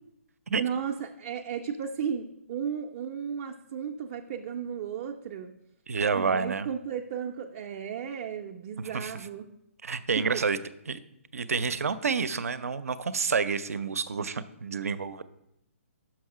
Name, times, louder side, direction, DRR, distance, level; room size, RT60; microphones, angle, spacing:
voice 1, 0.6-5.5 6.1-9.5 10.1-10.4, right 7 dB, 30° right, 1 dB, 0.4 m, -34 dB
voice 2, 5.9-6.7 8.8-9.1 9.8-10.6 10.9-11.0 11.3-15.2, right 5 dB, 90° right, 14 dB, 0.5 m, -29 dB
6.0 x 5.6 x 4.8 m, 0.82 s
hypercardioid pair, 160°, 8 cm